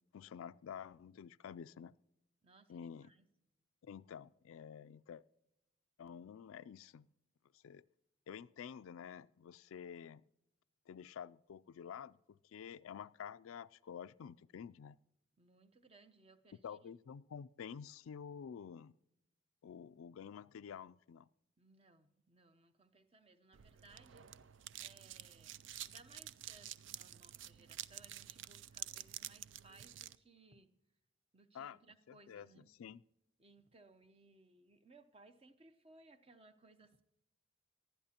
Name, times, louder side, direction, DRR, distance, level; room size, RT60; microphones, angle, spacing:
voice 1, 0.1-1.9 2.7-3.1 3.8-5.2 6.0-7.1 7.6-7.8 8.3-10.2 10.9-15.0 16.6-18.9 19.6-21.3 31.5-31.8 32.1-32.5 32.8-33.0, left 7 dB, 80° left, 17 dB, 0.3 m, -50 dB
voice 2, 2.4-3.3 15.4-16.9 21.6-24.3 24.8-25.5 25.9-30.7 31.3-32.7 33.4-37.0, right 3 dB, 30° right, 10 dB, 0.7 m, -64 dB
sound 1, 23.5-30.2, right 12 dB, 65° right, 0.4 m, -49 dB
19.0 x 12.0 x 2.9 m, 0.83 s
head